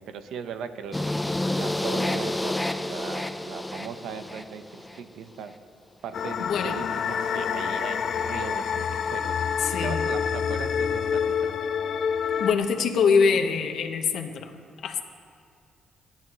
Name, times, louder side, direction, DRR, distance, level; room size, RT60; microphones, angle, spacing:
voice 1, 0.0-5.5 6.0-8.9 9.1-11.6, right 7 dB, 80° right, 9 dB, 0.9 m, -39 dB
sound 1, 0.9-5.0, left 1 dB, 10° left, 0.5 m, -29 dB
sound 2, 6.1-12.5, left 7 dB, 55° left, 0.5 m, -27 dB
voice 2, 9.6-10.0 12.4-14.5 14.8-15.0, left 5 dB, 75° left, 5 dB, 1.1 m, -24 dB
28.0 x 10.5 x 3.1 m, 2.3 s
cardioid pair, 90°, 0 cm